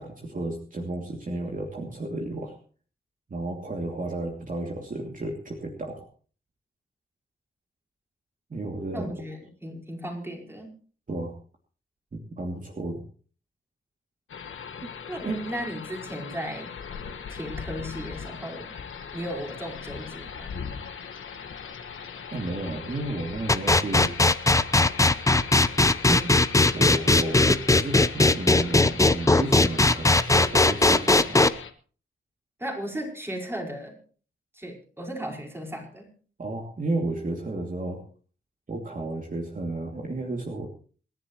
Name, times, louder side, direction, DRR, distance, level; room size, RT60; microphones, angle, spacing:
voice 1, 0.0-2.6 3.3-6.0 8.5-9.1 11.1-11.3 12.1-13.0 15.2-15.5 22.3-24.2 26.1-26.3 26.7-31.5 36.4-38.0 38.7-40.7, right 2 dB, 40° right, 1 dB, 2.7 m, -32 dB
voice 2, 8.9-10.7 15.1-16.7 17.3-18.7 19.1-20.5 32.6-33.9 34.5-36.1, equal, 10° right, 0 dB, 5.0 m, -36 dB
sound 1, 14.3-31.7, left 6 dB, 80° left, 1.6 m, -40 dB
sound 2, 23.5-31.5, left 2 dB, 15° left, 0.7 m, -18 dB
27.5 x 11.0 x 3.1 m, 0.41 s
wide cardioid pair, 90°, 20 cm